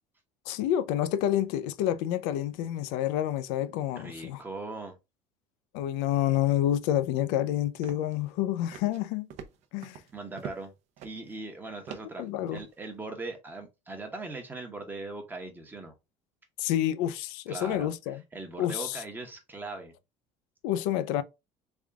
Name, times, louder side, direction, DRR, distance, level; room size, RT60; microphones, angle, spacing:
voice 1, 0.5-4.4 5.7-9.3 9.7-10.0 12.2-12.6 16.6-18.2 18.6-19.0 20.6-21.2, left 12 dB, 85° left, 0.5 m, -28 dB
voice 2, 3.9-5.0 10.1-10.7 11.0-15.9 17.5-19.9, right 2 dB, 15° right, 0.9 m, -40 dB
sound 1, 7.8-8.3 8.6-9.0 9.3-10.7 11.0-11.4 11.9-12.7, right 7 dB, 55° right, 0.6 m, -44 dB
3.5 x 2.4 x 3.5 m
cardioid pair, 135°, 13 cm